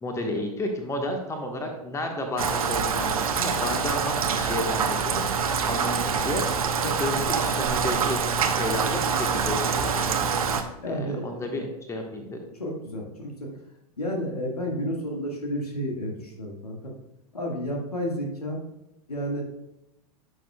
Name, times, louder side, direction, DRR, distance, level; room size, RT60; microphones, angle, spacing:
voice 1, 0.0-8.2 8.6-10.3 10.9-12.4, left 1 dB, 15° left, 3 dB, 1.3 m, -32 dB
Rain, 2.4-10.6, right 6 dB, 70° right, 0.8 m, -25 dB
voice 2, 10.8-11.5 12.5-13.5 14.0-16.9 17.3-18.6 19.1-19.4, equal, 80° left, 0 dB, 1.7 m, -31 dB
10.5 x 6.2 x 2.3 m, 0.90 s
figure-of-eight pair, 90°, 19 cm